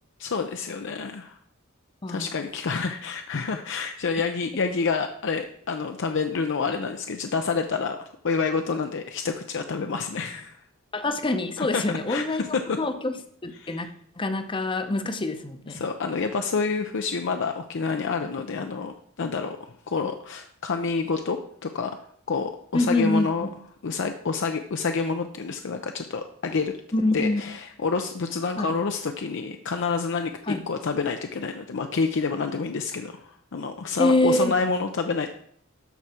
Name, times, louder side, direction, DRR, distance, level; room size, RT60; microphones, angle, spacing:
voice 1, 0.2-1.4 2.1-10.6 11.6-11.8 12.1-12.8 13.6-13.9 15.7-19.6 19.9-22.0 22.3-23.5 23.8-26.7 27.1-35.3, left 4 dB, 60° left, 6 dB, 0.5 m, -28 dB
voice 2, 10.9-13.1 13.4-13.9 14.2-15.8 22.7-23.5 26.9-27.4 28.6-28.7 30.5-30.6 34.0-34.5, left 2 dB, 25° left, 9 dB, 0.7 m, -25 dB
13.0 x 4.8 x 4.3 m, 0.64 s
head